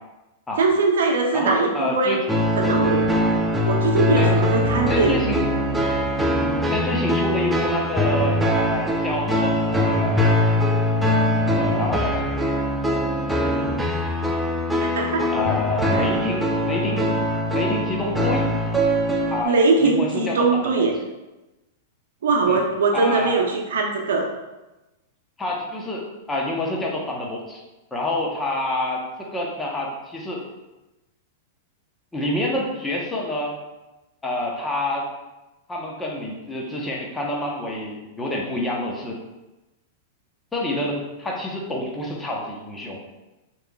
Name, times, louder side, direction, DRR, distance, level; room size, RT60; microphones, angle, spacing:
voice 1, 0.6-2.2 2.6-3.1 3.7-5.2 14.8-15.3 15.9-16.1 19.5-20.9 22.2-24.3, right 3 dB, 75° right, 2 dB, 0.7 m, -21 dB
voice 2, 1.3-2.2 4.2-4.3 4.9-5.4 6.7-10.3 11.6-12.3 15.3-17.1 17.5-18.5 19.3-19.6 19.8-20.8 22.5-22.6 22.9-23.4 25.4-27.6 27.9-30.4 32.1-33.6 34.2-35.1 35.7-39.2 40.5-43.0, left 1 dB, 10° left, -2 dB, 0.8 m, -27 dB
sound 1, 2.3-19.4, equal, 5° right, 0.4 m, -22 dB
4.8 x 3.0 x 2.3 m, 1.0 s
hypercardioid pair, 115°, 0 cm